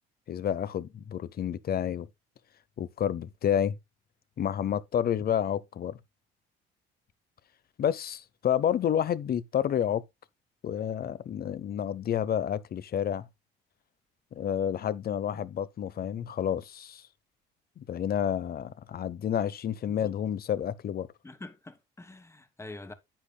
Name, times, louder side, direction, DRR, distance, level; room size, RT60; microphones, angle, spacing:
voice 1, 0.3-2.1 2.8-3.7 4.4-6.0 7.8-10.0 10.6-13.3 14.3-17.0 17.8-21.1, left 9 dB, 45° left, 0.9 m, -29 dB
voice 2, 19.9-20.2 21.2-22.9, left 2 dB, 15° left, 1.4 m, -45 dB
10.5 x 8.3 x 2.2 m
cardioid pair, 105°, 21 cm